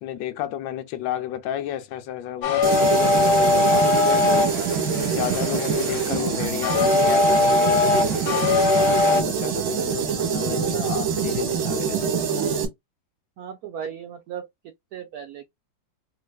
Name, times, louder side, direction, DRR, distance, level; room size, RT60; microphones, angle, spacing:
voice 1, 0.0-4.5 5.1-8.5 8.8-12.5, left 11 dB, 80° left, 1.3 m, -31 dB
sound 1, 2.4-9.2, left 3 dB, 60° left, 0.8 m, -21 dB
sound 2, 2.6-12.7, right 7 dB, 55° right, 1.3 m, -25 dB
voice 2, 13.4-14.5 14.9-15.5, right 8 dB, 75° right, 0.8 m, -36 dB
3.2 x 3.2 x 2.2 m
omnidirectional pair, 2.1 m